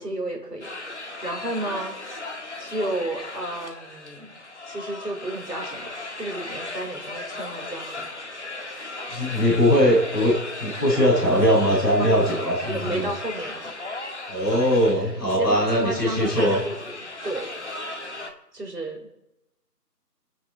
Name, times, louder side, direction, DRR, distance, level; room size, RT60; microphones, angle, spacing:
voice 1, 0.0-2.0 2.6-4.3 4.6-5.9 6.2-8.1 8.8-9.1 12.0-12.3 12.7-14.2 14.9-17.5 18.5-19.1, right 1 dB, 80° right, -1 dB, 5.3 m, -32 dB
sound 1, 0.6-18.3, left 2 dB, 45° left, 1.8 m, -36 dB
voice 2, 9.1-13.1 14.3-16.6, equal, 5° right, -16 dB, 2.0 m, -21 dB
26.0 x 9.3 x 4.4 m, 0.88 s
figure-of-eight pair, 165°, 48 cm